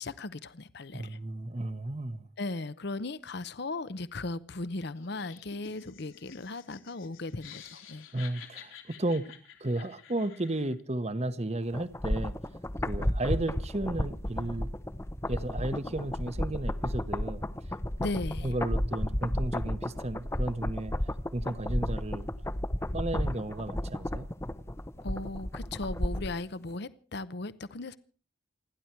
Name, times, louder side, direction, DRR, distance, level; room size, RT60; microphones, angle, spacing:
voice 1, 0.0-1.2 2.4-8.1 18.0-18.6 25.0-28.0, left 2 dB, 55° left, 0.8 m, -37 dB
voice 2, 0.9-2.3 8.1-9.3 9.6-12.3 12.8-14.7 15.3-17.4 18.4-20.9 21.3-22.3 22.9-24.3, right 1 dB, 30° right, 1.1 m, -33 dB
Laughter, 5.0-10.8, left 8 dB, 80° left, 3.4 m, -50 dB
sound 1, 11.7-26.4 26.7-26.8, left 1 dB, 15° left, 0.8 m, -33 dB
29.0 x 11.0 x 4.5 m
head